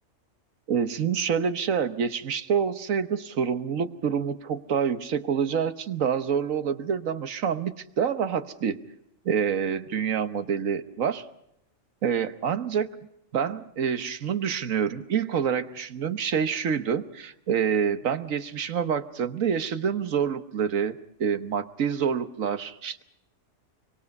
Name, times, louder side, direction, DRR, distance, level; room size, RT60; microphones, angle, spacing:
voice 1, 0.7-8.8 9.2-11.3 12.0-12.9 13.3-23.0, right 7 dB, 80° right, 11 dB, 1.5 m, -27 dB
24.5 x 24.5 x 5.3 m, 0.78 s
omnidirectional pair, 1.4 m